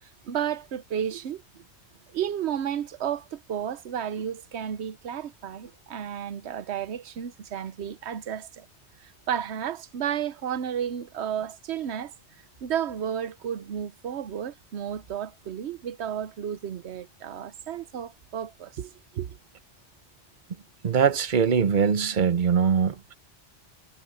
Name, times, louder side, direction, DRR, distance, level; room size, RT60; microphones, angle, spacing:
voice 1, 0.2-1.4 2.1-8.7 9.0-12.1 12.6-19.4, right 9 dB, 70° right, 1.1 m, -32 dB
voice 2, 20.8-23.1, right 7 dB, 45° right, 1.0 m, -22 dB
omnidirectional pair, 1.2 m